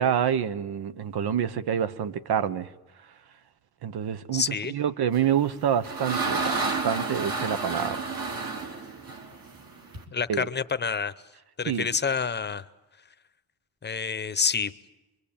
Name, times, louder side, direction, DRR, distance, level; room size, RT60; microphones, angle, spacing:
voice 1, 0.0-2.7 3.8-8.0 10.3-10.5 11.7-11.9, right 9 dB, 80° right, 1.3 m, -27 dB
voice 2, 4.3-4.7 10.1-11.1 11.6-12.6 13.8-14.7, left 5 dB, 30° left, 0.8 m, -28 dB
sound 1, 5.4-10.0, right 4 dB, 65° right, 4.1 m, -31 dB
25.5 x 24.0 x 8.8 m
wide cardioid pair, 160°, 38 cm